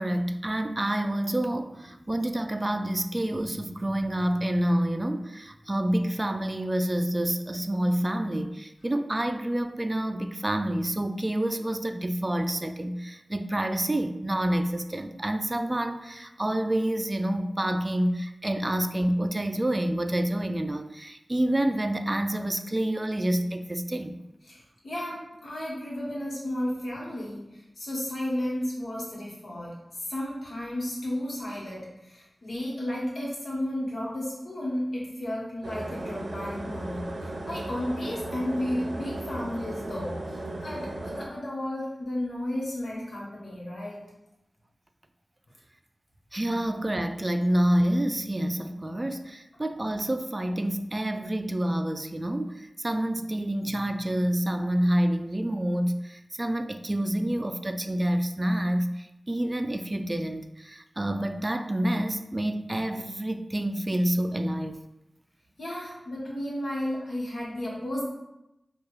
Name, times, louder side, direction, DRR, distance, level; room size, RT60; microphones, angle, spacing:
voice 1, 0.0-24.2 46.3-64.8, right 1 dB, 30° right, 8 dB, 0.3 m, -28 dB
voice 2, 24.5-44.0 65.6-68.0, left 1 dB, 80° left, -5 dB, 1.2 m, -33 dB
sound 1, 35.6-41.3, right 1 dB, 80° right, 0.5 m, -36 dB
4.4 x 2.4 x 3.1 m, 0.90 s
cardioid pair, 45°, 0 cm